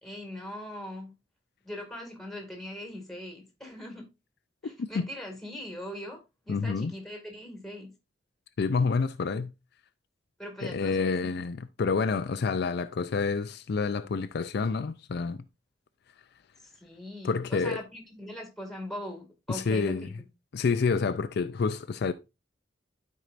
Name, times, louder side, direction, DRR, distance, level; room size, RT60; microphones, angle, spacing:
voice 1, 0.0-1.1 1.6-4.1 4.6-6.2 6.4-7.9 10.4-11.3 16.8-20.3, left 1 dB, ahead, 2.0 m, -41 dB
voice 2, 6.5-6.9 8.6-9.5 10.6-15.4 17.2-17.8 19.5-20.1 20.5-22.1, left 4 dB, 60° left, 0.4 m, -28 dB
12.0 x 4.7 x 2.5 m
head